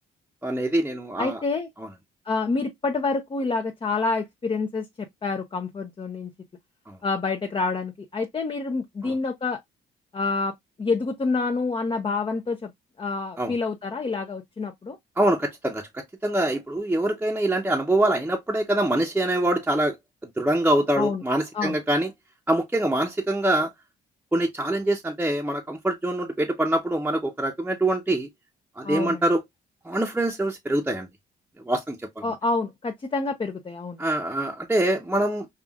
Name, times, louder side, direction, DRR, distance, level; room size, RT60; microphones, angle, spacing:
voice 1, 0.4-1.4 6.9-7.0 9.0-9.1 13.4-13.5 15.2-20.0 20.4-22.1 22.5-23.7 24.3-28.3 28.8-29.4 29.8-31.1 31.7-32.2 34.0-35.5, right 1 dB, 10° right, 0.8 m, -24 dB
voice 2, 1.2-1.7 2.3-6.3 7.0-9.6 10.1-12.7 13.0-15.0 21.0-21.2 21.5-21.8 28.8-29.2 32.2-34.0, left 4 dB, 25° left, 0.6 m, -27 dB
5.5 x 2.4 x 2.3 m
cardioid pair, 90°, 20 cm